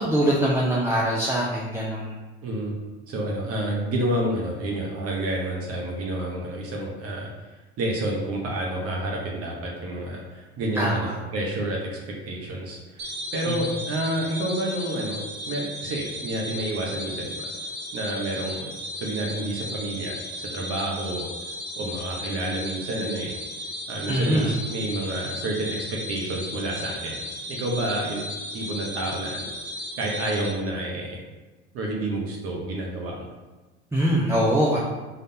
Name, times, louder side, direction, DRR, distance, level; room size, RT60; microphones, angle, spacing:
voice 1, 0.0-2.1 10.8-11.1 13.5-13.6 24.1-24.5 33.9-34.8, right 1 dB, 5° right, -6 dB, 0.6 m, -23 dB
voice 2, 2.4-2.7 3.1-7.3 7.8-12.0 12.2-15.2 15.5-17.5 17.9-21.3 21.8-23.3 23.9-27.2 27.5-28.2 28.5-29.5 30.0-31.2 31.7-33.3, right 1 dB, 45° right, -1 dB, 0.9 m, -29 dB
sound 1, 13.0-30.5, left 1 dB, 70° right, 1.2 m, -35 dB
3.9 x 3.3 x 2.7 m, 1.2 s
hypercardioid pair, 70°, 34 cm